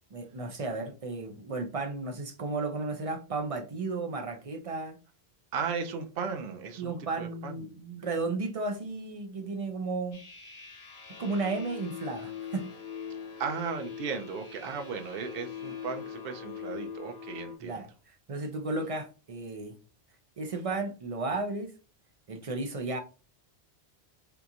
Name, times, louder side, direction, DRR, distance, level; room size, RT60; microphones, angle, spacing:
voice 1, 0.1-5.0 6.8-10.3 11.2-12.7 17.6-19.8 20.4-21.7 22.3-23.0, right 3 dB, 45° right, 0.5 m, -34 dB
voice 2, 5.5-6.9 7.2-7.6 13.4-17.8, right 6 dB, 65° right, 0.8 m, -35 dB
sound 1, 10.1-17.6, left 7 dB, 75° left, 1.1 m, -42 dB
3.7 x 2.8 x 2.4 m
omnidirectional pair, 1.1 m